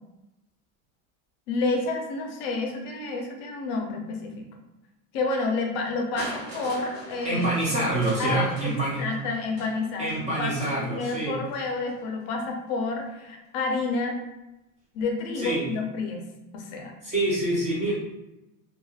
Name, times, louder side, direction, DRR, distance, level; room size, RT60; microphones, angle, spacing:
voice 1, 1.5-4.3 5.1-7.5 8.2-14.2 14.9-16.3 16.5-16.9, left 3 dB, 55° left, 2 dB, 0.6 m, -29 dB
Crushing, 6.2-12.1 13.0-13.1, right 2 dB, 55° right, 1.1 m, -42 dB
voice 2, 7.2-9.0 10.0-11.4 15.4-15.7 17.0-17.9, right 1 dB, 20° right, -7 dB, 0.5 m, -26 dB
2.9 x 2.3 x 2.3 m, 0.95 s
supercardioid pair, 155°, 41 cm